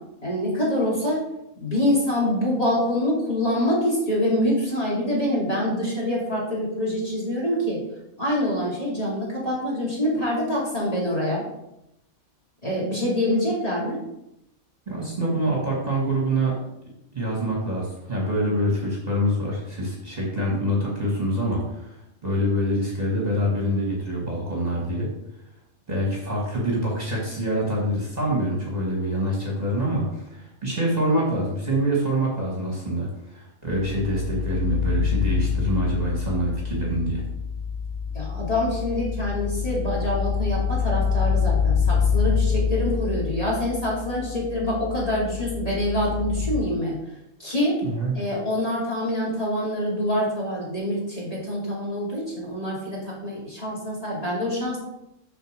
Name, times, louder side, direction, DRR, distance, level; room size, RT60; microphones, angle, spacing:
voice 1, 0.2-1.2 1.6-7.8 8.2-11.4 12.6-14.0 38.1-47.0 47.4-47.8 48.1-54.8, left 1 dB, 25° left, -6 dB, 2.7 m, -25 dB
voice 2, 14.9-16.5 17.1-21.9 22.2-25.1 25.9-37.2 47.8-48.1, right 1 dB, 30° right, -4 dB, 1.8 m, -25 dB
sound 1, 33.7-46.6, left 6 dB, 65° left, 1.0 m, -26 dB
6.6 x 4.2 x 6.5 m, 0.85 s
omnidirectional pair, 1.4 m